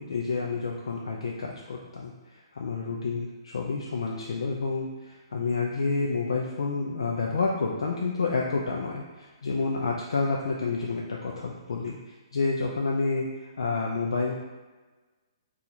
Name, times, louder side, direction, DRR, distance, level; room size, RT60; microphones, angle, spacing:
voice 1, 0.0-13.3 13.6-14.3, left 4 dB, 80° left, -1 dB, 0.4 m, -29 dB
2.8 x 2.4 x 3.9 m, 1.3 s
hypercardioid pair, 145°, 3 cm